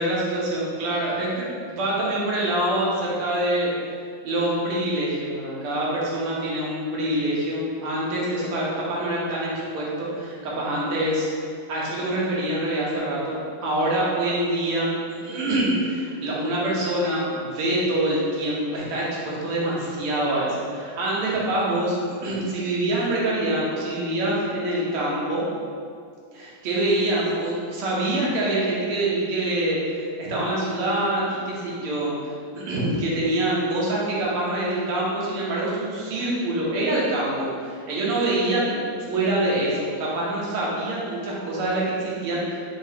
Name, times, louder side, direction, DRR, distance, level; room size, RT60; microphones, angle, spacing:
voice 1, 0.0-3.7 4.2-11.3 11.7-25.4 26.3-32.1 32.5-42.6, right 1 dB, 80° right, -5 dB, 1.9 m, -25 dB
5.0 x 2.8 x 3.4 m, 2.2 s
omnidirectional pair, 2.4 m